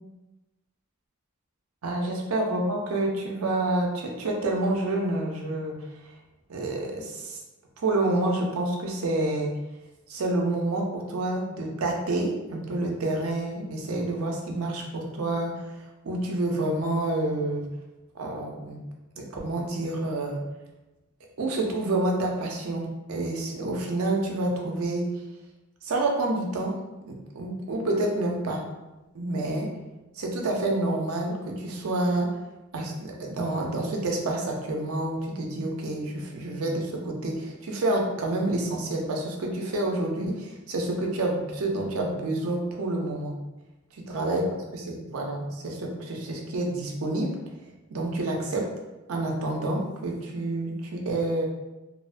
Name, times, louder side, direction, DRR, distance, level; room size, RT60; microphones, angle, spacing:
voice 1, 1.8-5.7 6.5-7.4 7.8-9.5 10.1-15.7 16.0-17.6 18.1-18.8 19.2-20.4 21.4-25.1 25.8-26.7 27.1-28.6 29.1-29.7 30.2-32.3 32.7-43.3 43.9-44.4 44.7-47.3 47.9-48.7 49.1-51.5, right 2 dB, 85° right, 0 dB, 0.5 m, -28 dB
2.6 x 2.1 x 2.5 m, 1.0 s
head